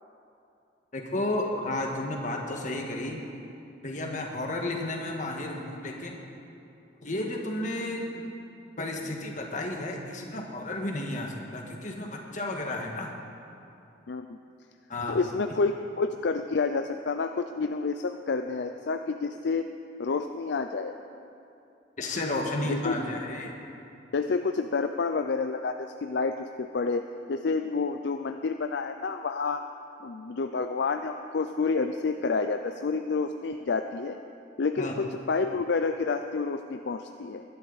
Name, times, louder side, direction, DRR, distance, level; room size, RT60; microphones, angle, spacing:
voice 1, 0.9-3.2 3.8-6.2 7.0-8.3 8.8-13.1 14.9-15.2 22.0-23.5 34.8-35.0, left 1 dB, 40° left, 1 dB, 1.6 m, -32 dB
voice 2, 15.1-19.7 20.0-20.9 22.7-22.9 24.1-27.0 27.3-29.6 30.0-34.2 34.6-37.4, left 4 dB, 60° left, 7 dB, 0.4 m, -29 dB
21.0 x 11.0 x 4.1 m, 2.7 s
head